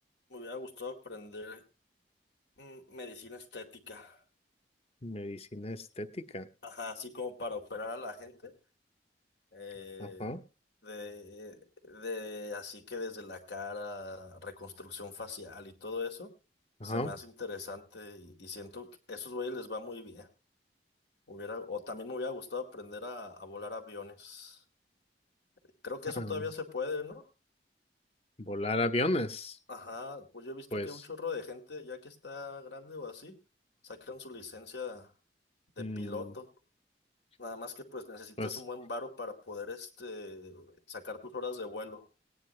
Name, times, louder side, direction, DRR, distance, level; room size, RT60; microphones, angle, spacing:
voice 1, 0.3-1.6 2.6-4.2 6.6-8.5 9.5-10.4 10.8-16.3 16.8-20.3 21.3-24.6 25.8-27.2 29.7-33.4 33.8-35.1 35.8-36.5 37.4-42.0, left 3 dB, 80° left, 4 dB, 2.3 m, -41 dB
voice 2, 5.0-6.1 6.3-6.5 10.0-10.4 16.8-17.1 26.2-26.3 28.5-29.5 30.7-30.9 35.8-36.2 38.4-38.6, left 1 dB, 35° left, 10 dB, 0.9 m, -33 dB
18.5 x 9.8 x 3.3 m, 0.32 s
head